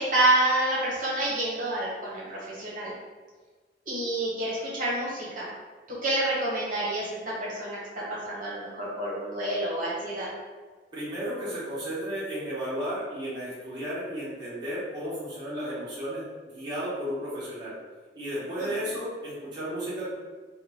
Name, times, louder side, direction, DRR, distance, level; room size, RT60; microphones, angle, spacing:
voice 1, 0.0-2.9 3.9-5.5 6.0-10.3 18.6-18.7, right 1 dB, 50° right, -7 dB, 1.0 m, -28 dB
voice 2, 10.9-16.2 16.5-17.7 18.1-20.1, equal, 25° right, -10 dB, 0.9 m, -33 dB
3.7 x 2.2 x 3.0 m, 1.4 s
head